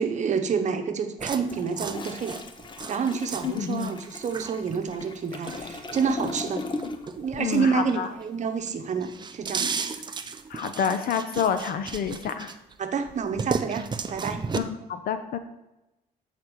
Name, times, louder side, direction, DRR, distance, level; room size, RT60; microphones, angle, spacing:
voice 1, 0.0-2.4 2.9-6.6 7.2-9.7 12.8-14.4, right 5 dB, 45° right, 7 dB, 0.9 m, -28 dB
sound 1, 1.2-8.3 8.7-12.7 13.1-14.6, right 5 dB, 25° right, 0.6 m, -35 dB
Toilet flush, 1.3-7.3 7.5-7.8, left 3 dB, 30° left, 0.7 m, -38 dB
voice 2, 3.4-4.0 7.4-8.1 10.5-12.5 14.5-15.4, left 7 dB, 65° left, 9 dB, 0.7 m, -28 dB
7.9 x 4.2 x 6.1 m, 0.94 s
cardioid pair, 110°, 16 cm